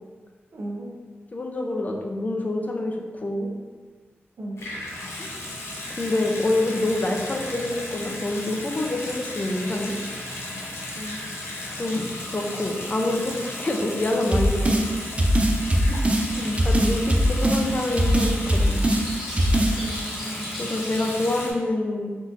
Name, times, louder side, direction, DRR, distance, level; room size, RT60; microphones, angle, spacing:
voice 1, 0.5-1.0 4.4-4.6 10.9-11.2 15.9-16.0 16.3-16.6 19.8-20.5, equal, 90° right, -2 dB, 0.6 m, -34 dB
voice 2, 1.3-3.5 5.2-5.3 6.0-9.9 11.8-12.0 12.3-14.7 16.6-18.8 20.6-22.1, left 2 dB, 35° left, 1 dB, 0.4 m, -26 dB
Water tap faucet / Sink (filling or washing) / Bathtub (filling or washing), 4.6-21.5, left 1 dB, 85° left, 0.6 m, -35 dB
sound 1, 14.3-14.9 15.2-16.3 16.6-17.6 18.0-19.0 19.4-19.7, equal, 30° right, 0.4 m, -20 dB
sound 2, 16.1-21.4, equal, 5° right, 1.1 m, -39 dB
3.6 x 2.6 x 2.5 m, 1.4 s
wide cardioid pair, 70°, 4 cm